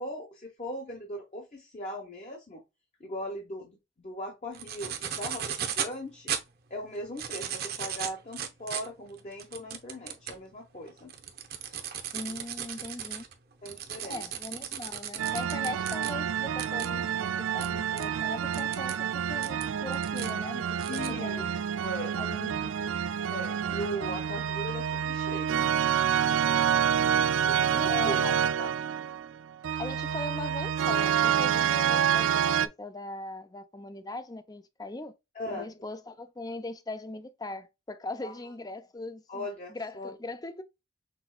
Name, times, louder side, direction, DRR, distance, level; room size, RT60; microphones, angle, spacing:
voice 1, 0.0-2.6 3.0-6.3 6.7-11.1 12.2-12.4 13.6-14.2 20.9-21.5 21.8-22.2 23.3-25.7 26.2-26.8 27.4-28.3 28.6-28.7 35.3-35.7 38.2-38.3 39.3-40.1, equal, 35° left, 0.9 m, -39 dB
sound 1, 4.5-6.0 6.3-6.4 7.0-10.4 10.9-16.1 16.6-16.9 17.6-17.7 18.0-18.1 18.5-19.0 19.4-20.3 20.8-21.1, right 9 dB, 50° right, 0.8 m, -36 dB
voice 2, 12.1-13.2 14.0-21.5 22.2-22.9 23.7-24.2 27.9-28.4 29.8-35.1 35.5-40.6, left 2 dB, 20° left, 0.5 m, -40 dB
sound 2, 15.2-32.7, right 8 dB, 80° right, 0.4 m, -28 dB
6.0 x 3.4 x 2.2 m
head